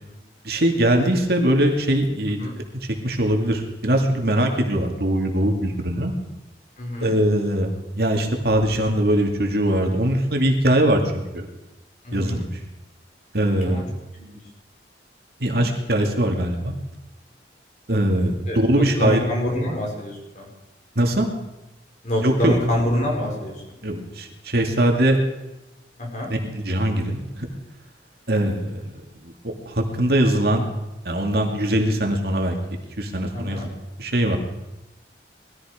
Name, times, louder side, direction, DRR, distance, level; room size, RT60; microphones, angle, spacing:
voice 1, 0.4-2.5 3.0-6.1 7.0-11.5 12.1-12.5 13.3-13.8 15.4-16.7 17.9-19.2 21.0-21.3 22.2-22.5 23.8-25.2 26.3-27.5 28.3-30.7 31.0-32.6 33.0-33.6 34.0-34.4, right 1 dB, 60° right, 3 dB, 2.4 m, -21 dB
voice 2, 6.8-7.1 12.0-12.5 13.6-13.8 14.1-14.4 18.5-20.5 22.0-23.6 26.0-26.3 33.3-33.7, left 1 dB, 45° left, 0 dB, 5.0 m, -26 dB
20.5 x 14.0 x 5.1 m, 0.97 s
head